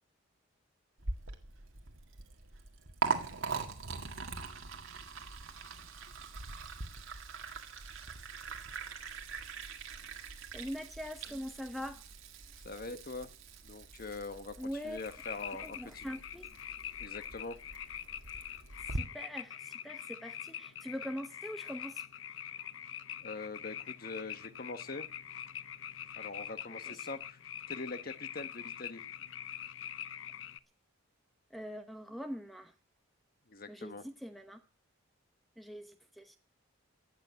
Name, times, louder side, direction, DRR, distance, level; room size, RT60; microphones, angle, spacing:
Liquid, 1.0-19.0, right 4 dB, 70° right, 2.0 m, -42 dB
voice 1, 10.5-12.0 14.6-15.0 15.6-16.5 18.9-22.0 26.7-27.1 31.5-32.7 33.7-34.6 35.6-36.4, equal, ahead, 8 dB, 0.9 m, -43 dB
voice 2, 12.6-13.3 13.6-14.6 14.8-16.0 17.0-17.6 23.2-25.1 26.2-27.4 27.7-29.0 33.5-34.0, left 3 dB, 45° left, 10 dB, 1.1 m, -43 dB
sound 1, 15.0-30.6, left 10 dB, 65° left, 0.7 m, -44 dB
16.0 x 6.9 x 9.5 m, 0.39 s
head